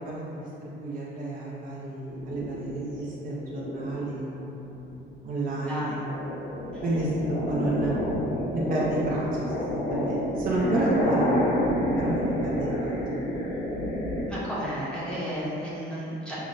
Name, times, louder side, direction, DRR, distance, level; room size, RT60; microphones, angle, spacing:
voice 1, 0.0-4.9 5.2-6.0 6.8-8.0 8.5-11.5 12.0-12.9, right 1 dB, 45° right, -6 dB, 0.5 m, -31 dB
sound 1, 2.1-4.1 4.6-5.1 5.5-14.2, equal, 60° left, 0.9 m, -29 dB
voice 2, 5.7-6.0 6.7-6.8 14.3-16.4, equal, 5° left, -10 dB, 0.7 m, -33 dB
5.5 x 2.0 x 2.5 m, 3.0 s
cardioid pair, 175°, 20 cm